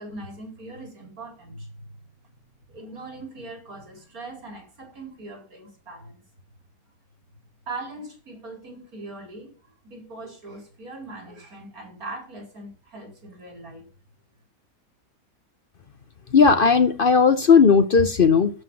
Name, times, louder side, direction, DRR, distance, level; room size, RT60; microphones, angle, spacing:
voice 1, 0.0-2.0 2.7-6.2 7.7-13.9, right 2 dB, 80° right, 4.6 m, -40 dB
voice 2, 16.3-18.5, left 5 dB, 45° left, 0.8 m, -16 dB
12.0 x 5.6 x 7.3 m
omnidirectional pair, 1.5 m